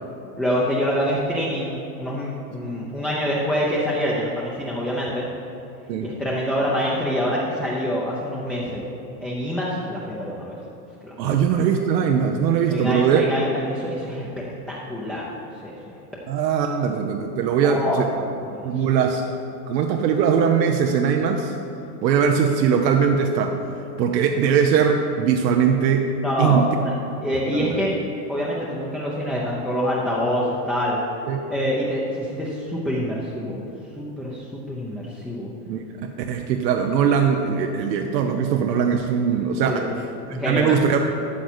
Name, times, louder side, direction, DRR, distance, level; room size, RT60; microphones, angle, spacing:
voice 1, 0.4-5.3 6.0-8.9 9.2-10.6 11.0-11.4 12.7-15.4 15.6-16.0 16.6-16.7 17.6-19.0 26.2-26.9 27.2-27.9 28.3-31.0 31.5-33.6 34.0-35.5 39.7-39.9 40.3-40.8, equal, ahead, -6 dB, 0.6 m, -26 dB
voice 2, 11.2-13.2 16.3-18.1 18.6-19.2 19.7-21.5 22.0-23.6 24.0-26.1 26.4-26.7 27.5-27.8 31.3-31.4 35.7-39.9 40.5-41.1, right 7 dB, 80° right, 3 dB, 1.0 m, -21 dB
12.5 x 8.0 x 4.4 m, 2.9 s
supercardioid pair, 155°, 50 cm